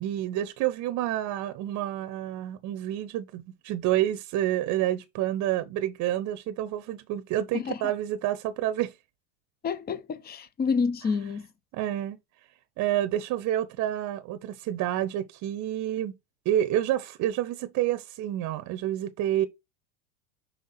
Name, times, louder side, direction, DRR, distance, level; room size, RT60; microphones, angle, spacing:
voice 1, 0.0-8.9 11.7-12.2 12.8-16.1 16.4-19.5, right 12 dB, 45° right, 0.9 m, -28 dB
voice 2, 9.6-11.5, left 5 dB, 25° left, 0.9 m, -28 dB
5.6 x 3.6 x 5.6 m
hypercardioid pair, 100°, 38 cm